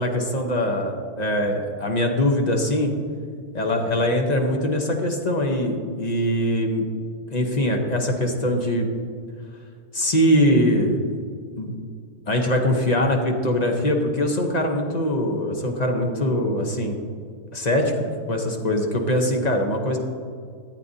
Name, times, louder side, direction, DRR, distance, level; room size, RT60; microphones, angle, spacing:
voice 1, 0.0-2.9 3.5-6.9 7.3-8.9 9.9-11.0 11.6-11.8 12.3-16.9 17.5-20.0, left 1 dB, 35° left, 2 dB, 0.7 m, -22 dB
13.5 x 8.3 x 2.7 m, 2.1 s
omnidirectional pair, 1.6 m